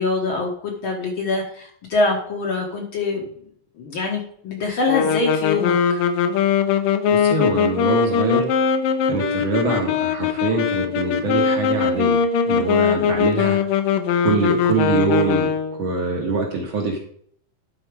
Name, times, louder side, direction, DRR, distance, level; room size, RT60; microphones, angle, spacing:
voice 1, 0.0-3.3 3.8-6.0, left 3 dB, 60° left, 1 dB, 1.6 m, -24 dB
sound 1, 4.9-15.9, left 6 dB, 75° left, 1.9 m, -20 dB
voice 2, 7.1-8.4 9.0-12.2 12.4-13.6 14.2-17.0, right 3 dB, 55° right, 0 dB, 1.6 m, -24 dB
11.0 x 4.1 x 4.7 m, 0.63 s
omnidirectional pair, 3.3 m